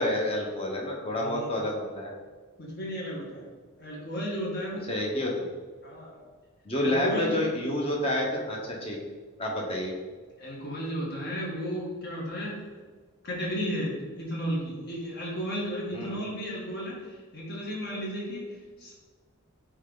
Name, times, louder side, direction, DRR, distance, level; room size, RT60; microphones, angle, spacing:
voice 1, 0.0-2.1 4.9-5.5 6.6-9.0 9.4-10.0 15.9-16.2, left 1 dB, 25° left, -1 dB, 1.1 m, -29 dB
voice 2, 1.1-1.5 2.6-3.5 3.8-4.9 5.8-6.3 6.8-7.4 10.4-12.6 13.2-18.9, equal, 45° left, -4 dB, 1.8 m, -34 dB
9.0 x 3.3 x 4.0 m, 1.4 s
head